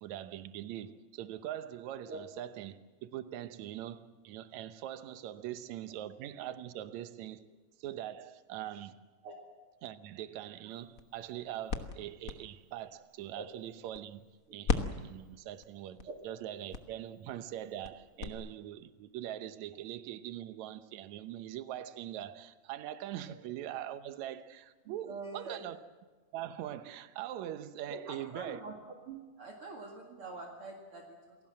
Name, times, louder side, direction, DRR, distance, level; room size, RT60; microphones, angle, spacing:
voice 1, 0.0-7.4 7.8-9.0 9.8-25.8 26.3-28.6, right 12 dB, 75° right, 2.2 m, -42 dB
sound 1, 10.7-14.3 14.6-18.3, left 5 dB, 55° left, 0.9 m, -39 dB
voice 2, 24.8-25.6 27.9-28.7 29.1-31.4, right 3 dB, 50° right, 2.8 m, -45 dB
27.5 x 18.0 x 7.7 m
omnidirectional pair, 3.4 m